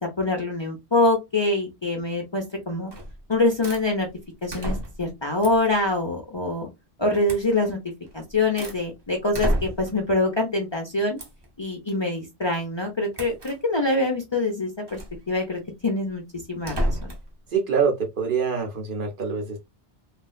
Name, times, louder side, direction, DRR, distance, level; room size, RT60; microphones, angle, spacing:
voice 1, 0.0-2.9 3.3-4.1 4.4-6.7 7.0-7.8 8.1-11.2 11.6-15.0 15.3-16.2 16.5-17.1, left 2 dB, 30° left, 0.6 m, -25 dB
sound 1, 2.9-3.2 3.6-3.9 4.5-5.1 5.4-5.7 7.3-7.5 8.1-8.8 9.3-10.0 11.2-11.5 13.1-13.6 14.9-15.2 16.6-17.3, equal, 25° right, 0.7 m, -29 dB
voice 2, 17.5-19.6, right 6 dB, 55° right, 0.9 m, -25 dB
3.2 x 2.5 x 2.3 m
omnidirectional pair, 1.1 m